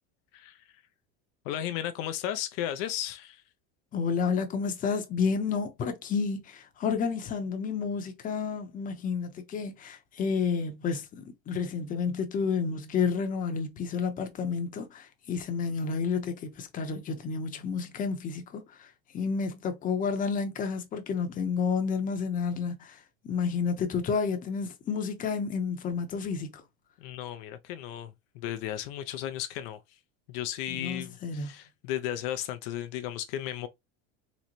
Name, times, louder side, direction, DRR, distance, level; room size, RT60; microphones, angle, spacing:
voice 1, 0.3-0.8 1.4-3.4 27.0-30.0 30.3-33.7, left 11 dB, 65° left, 0.5 m, -35 dB
voice 2, 3.9-26.6 30.7-31.5, left 5 dB, 25° left, 0.7 m, -30 dB
3.9 x 2.1 x 2.8 m
supercardioid pair, 140°, 31 cm